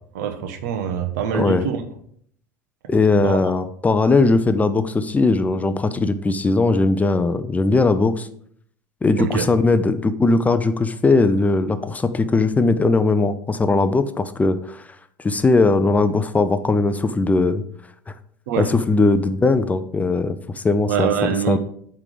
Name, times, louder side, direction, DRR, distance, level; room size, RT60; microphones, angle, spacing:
voice 1, 0.1-1.8 3.2-3.5 9.2-9.4 18.5-18.7 20.9-21.6, right 8 dB, 65° right, 8 dB, 1.0 m, -24 dB
voice 2, 1.3-1.7 2.9-8.3 9.0-14.9 15.2-17.6 18.1-18.2 18.6-21.1 21.5-21.6, left 3 dB, 15° left, 11 dB, 0.5 m, -19 dB
8.2 x 3.5 x 5.0 m, 0.64 s
figure-of-eight pair, 75°, 10 cm